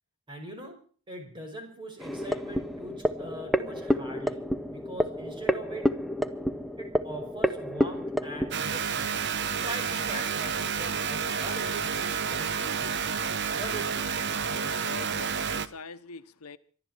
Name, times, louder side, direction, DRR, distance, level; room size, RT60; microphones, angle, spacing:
voice 1, 0.3-0.8 1.1-5.9 6.8-9.2 9.6-13.0 13.5-14.0, right 1 dB, 20° right, 5.4 m, -42 dB
sound 1, 2.0-8.5, equal, ahead, 0.7 m, -29 dB
sound 2, 8.5-15.7, right 6 dB, 50° right, 0.9 m, -30 dB
voice 2, 14.5-16.6, left 4 dB, 85° left, 1.0 m, -44 dB
24.5 x 12.5 x 4.5 m
head